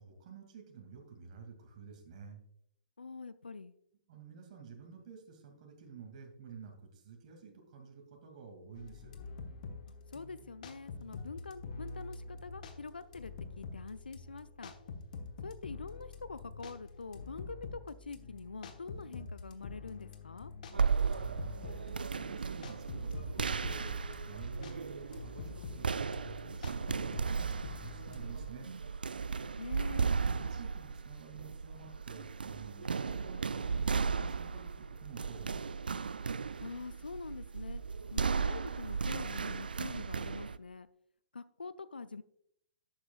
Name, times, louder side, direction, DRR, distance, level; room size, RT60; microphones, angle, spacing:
voice 1, 0.0-2.4 4.1-9.1 21.1-28.7 29.9-35.7, right 5 dB, 50° right, 2 dB, 2.3 m, -51 dB
voice 2, 3.0-3.7 10.1-14.7 15.4-20.5 29.6-30.1 36.6-37.8 38.1-40.9 41.3-42.2, left 4 dB, 80° left, 15 dB, 0.4 m, -45 dB
sound 1, 8.8-28.5, left 4 dB, 55° left, 1.2 m, -47 dB
sound 2, 20.7-40.6, right 5 dB, 75° right, 0.4 m, -35 dB
11.5 x 8.7 x 2.3 m, 0.72 s
figure-of-eight pair, 115°, 5 cm